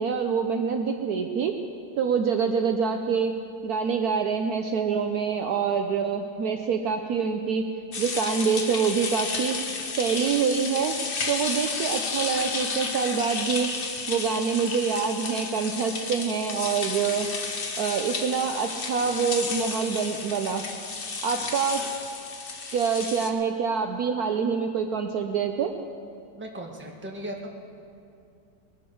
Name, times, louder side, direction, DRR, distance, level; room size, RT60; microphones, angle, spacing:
voice 1, 0.0-1.5 2.0-3.3 3.6-7.6 8.0-9.6 10.0-11.0 11.3-13.7 14.1-17.3 17.8-20.6 21.2-21.8 22.7-25.7, right 6 dB, 65° right, 5 dB, 1.1 m, -26 dB
sound 1, 7.9-23.3, left 4 dB, 40° left, 0.9 m, -32 dB
voice 2, 26.3-27.5, right 1 dB, 5° right, 0 dB, 1.2 m, -37 dB
20.5 x 12.5 x 4.7 m, 2.5 s
omnidirectional pair, 2.0 m